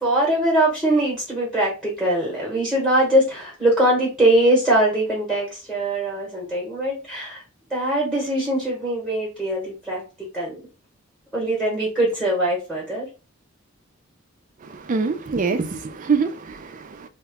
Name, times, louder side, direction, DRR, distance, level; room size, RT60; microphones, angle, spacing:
voice 1, 0.0-7.4 7.7-10.6 11.3-13.1, right 1 dB, 5° right, 1.0 m, -22 dB
voice 2, 14.6-17.1, right 4 dB, 35° right, 0.4 m, -25 dB
2.8 x 2.2 x 3.4 m
head